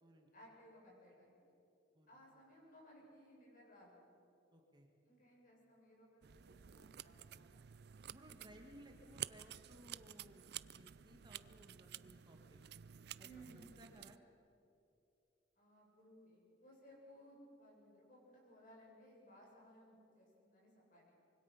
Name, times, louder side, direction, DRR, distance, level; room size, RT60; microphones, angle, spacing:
voice 1, 0.3-1.5 2.1-4.1 5.0-7.6 13.2-13.7 15.6-21.1, equal, 50° left, -3 dB, 7.5 m, -62 dB
voice 2, 4.5-4.9 8.1-10.4 10.7-12.6 13.2-14.2, equal, 25° right, 2 dB, 1.7 m, -61 dB
sound 1, 6.2-14.2, right 11 dB, 60° right, 0.5 m, -52 dB
25.5 x 24.0 x 5.8 m, 2.9 s
head